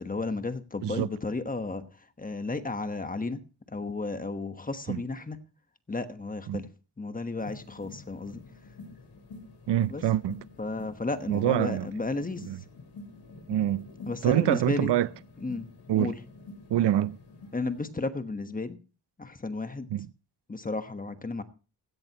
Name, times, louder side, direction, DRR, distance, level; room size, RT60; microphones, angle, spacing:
voice 1, 0.0-1.8 2.2-3.4 3.7-5.4 5.9-6.7 7.0-8.4 9.9-10.0 10.6-12.4 14.1-14.9 15.4-15.7 16.0-16.2 17.5-18.8 19.2-19.9 20.5-21.4, left 3 dB, 20° left, 1.2 m, -33 dB
sound 1, 7.4-17.8, left 3 dB, 70° left, 4.4 m, -47 dB
voice 2, 9.7-10.4 11.3-11.9 12.4-12.6 13.5-13.9 14.2-15.1 15.9-16.1 16.7-17.2 19.9-20.1, right 12 dB, 85° right, 0.6 m, -25 dB
16.5 x 15.5 x 2.9 m
wide cardioid pair, 160°, 41 cm